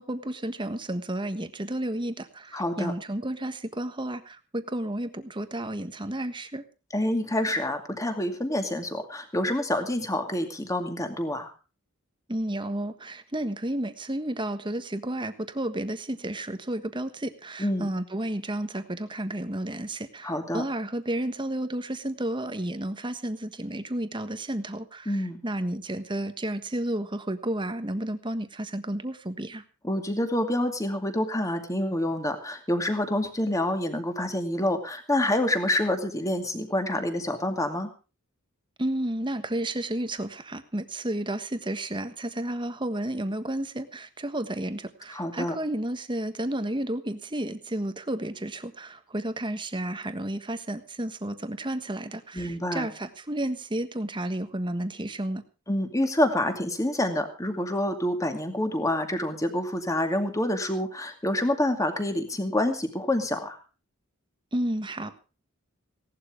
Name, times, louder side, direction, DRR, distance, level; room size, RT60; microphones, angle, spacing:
voice 1, 0.0-6.6 12.3-29.6 38.8-55.4 64.5-65.2, right 1 dB, 20° right, 10 dB, 1.4 m, -32 dB
voice 2, 2.5-2.9 6.9-11.5 17.6-17.9 20.2-20.6 25.1-25.4 29.8-37.9 45.1-45.6 52.3-52.9 55.7-63.6, left 1 dB, 15° left, 6 dB, 2.4 m, -27 dB
17.5 x 12.0 x 5.0 m, 0.35 s
head